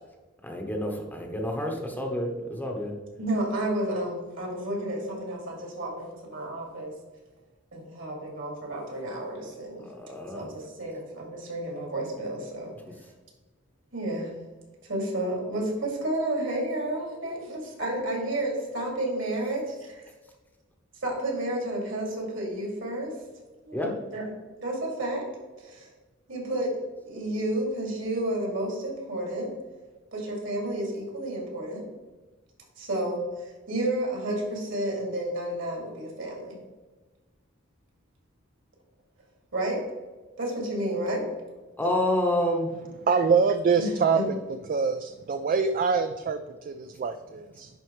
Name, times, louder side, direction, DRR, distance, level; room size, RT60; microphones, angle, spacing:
voice 1, 0.4-2.9 9.8-10.5 23.7-23.9 41.8-42.7, left 1 dB, 10° left, 1 dB, 0.8 m, -28 dB
voice 2, 3.2-6.9 7.7-9.9 10.3-13.1 13.9-14.3 14.9-20.1 21.0-23.1 23.7-24.3 24.6-25.3 25.6-25.9 26.3-26.8 27.1-29.5 30.1-31.9 32.8-36.6 39.5-39.8 40.4-41.2 43.8-44.2, right 1 dB, 65° right, -1 dB, 2.4 m, -31 dB
voice 3, 43.0-44.2 44.7-47.7, right 5 dB, 40° right, 9 dB, 0.3 m, -25 dB
10.5 x 4.3 x 3.1 m, 1.2 s
head